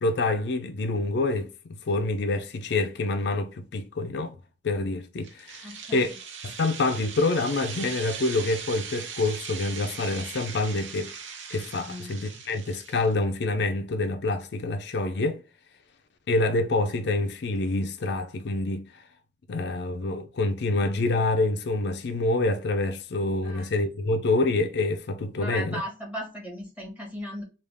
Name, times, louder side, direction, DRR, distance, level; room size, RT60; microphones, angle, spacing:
voice 1, 0.0-4.4 4.6-6.2 6.4-11.1 11.5-15.4 16.3-19.0 19.5-25.8, left 2 dB, 60° left, 0.4 m, -27 dB
sound 1, 5.2-13.1, right 6 dB, 90° right, 0.8 m, -39 dB
voice 2, 5.6-6.1 11.9-12.1 23.4-23.7 25.4-27.4, equal, 10° right, 1.4 m, -37 dB
3.4 x 2.4 x 3.4 m
head